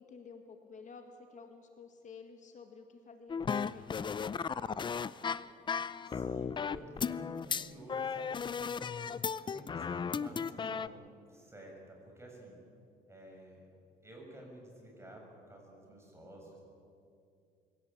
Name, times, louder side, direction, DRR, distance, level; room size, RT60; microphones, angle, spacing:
voice 1, 0.0-4.3 9.1-9.4, left 5 dB, 45° left, 5 dB, 1.9 m, -52 dB
sound 1, 3.3-10.9, left 6 dB, 30° left, 0.5 m, -35 dB
voice 2, 6.0-8.8 9.5-11.0 11.3-12.6 13.1-13.6 14.0-16.6, right 1 dB, 15° right, 0 dB, 7.2 m, -51 dB
23.5 x 17.0 x 8.7 m, 2.5 s
cardioid pair, 110°, 17 cm